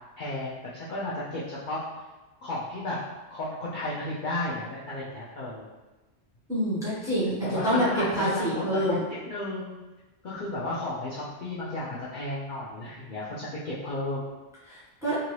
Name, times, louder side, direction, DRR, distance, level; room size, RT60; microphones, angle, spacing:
voice 1, 0.2-1.8 2.4-3.0 3.3-5.7 7.4-9.0 9.2-9.8 10.2-14.3, left 2 dB, 55° left, -8 dB, 0.6 m, -33 dB
voice 2, 6.5-7.8 8.1-9.0 14.7-15.2, equal, 5° right, -10 dB, 1.0 m, -27 dB
2.7 x 2.6 x 3.0 m, 1.1 s
omnidirectional pair, 1.2 m